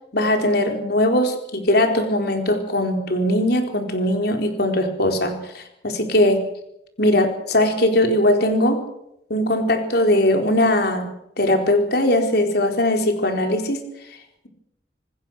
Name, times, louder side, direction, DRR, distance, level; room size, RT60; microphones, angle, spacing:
voice 1, 0.1-6.4 7.0-8.8 9.3-11.1 11.4-13.8, left 1 dB, 60° left, 4 dB, 4.3 m, -20 dB
26.5 x 20.5 x 6.6 m, 0.81 s
head